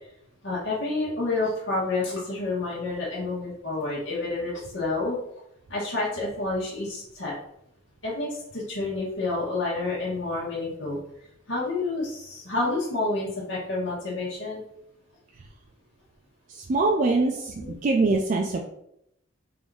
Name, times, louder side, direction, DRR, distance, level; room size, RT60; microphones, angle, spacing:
voice 1, 0.4-5.2 5.7-7.3 8.0-11.0 11.5-14.6 17.6-17.7, left 2 dB, 70° left, -6 dB, 1.2 m, -29 dB
voice 2, 16.5-18.7, right 3 dB, 45° right, 1 dB, 0.4 m, -24 dB
3.5 x 2.6 x 4.6 m, 0.77 s
head